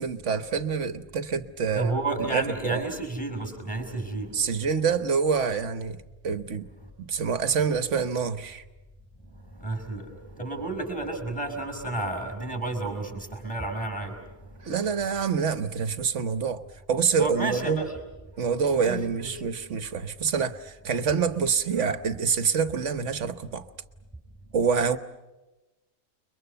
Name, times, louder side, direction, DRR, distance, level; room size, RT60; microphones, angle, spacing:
voice 1, 0.0-2.8 4.3-6.0 6.2-6.7 7.0-8.6 14.6-16.6 16.9-17.9 18.4-23.7 24.5-25.0, right 6 dB, 60° right, 1.3 m, -26 dB
voice 2, 1.8-4.3 9.6-10.0 10.4-14.1 17.2-17.9 18.8-19.3, right 2 dB, 5° left, 5.5 m, -31 dB
30.0 x 23.0 x 6.9 m
omnidirectional pair, 1.5 m